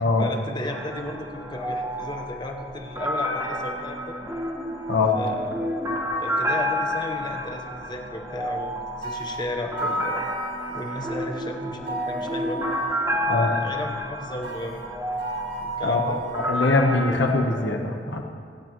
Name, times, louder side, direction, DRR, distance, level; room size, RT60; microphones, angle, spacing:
voice 1, 0.0-4.2 5.1-5.6 6.2-10.3 10.7-12.6 13.3-14.8 15.6-16.2, left 1 dB, 25° left, 3 dB, 1.0 m, -34 dB
sound 1, 0.7-17.6, left 1 dB, 20° right, 1.6 m, -30 dB
sound 2, 9.0-11.1 11.9-13.1 14.4-16.6, right 4 dB, 80° right, 1.8 m, -35 dB
voice 2, 15.8-18.2, left 3 dB, 70° left, 2 dB, 1.2 m, -22 dB
24.5 x 8.8 x 3.1 m, 2.1 s
head